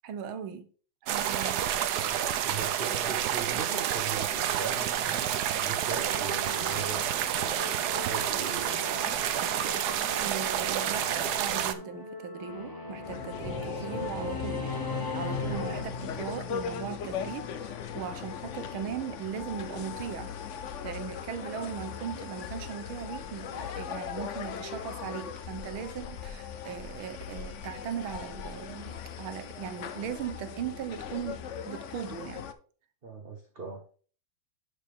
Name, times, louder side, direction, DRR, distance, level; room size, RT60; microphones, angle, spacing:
voice 1, 0.0-0.7 1.1-1.6 10.2-20.3 20.8-32.5, right 8 dB, 90° right, 1.7 m, -38 dB
sound 1, 1.1-11.7, right 10 dB, 70° right, 1.0 m, -29 dB
voice 2, 1.9-8.7 33.0-33.8, right 4 dB, 35° right, 1.1 m, -40 dB
Singing / Musical instrument, 5.9-15.8, left 3 dB, 15° left, 1.1 m, -38 dB
sound 2, 13.0-32.5, left 7 dB, 80° left, 0.6 m, -39 dB
10.5 x 4.9 x 3.6 m
omnidirectional pair, 2.2 m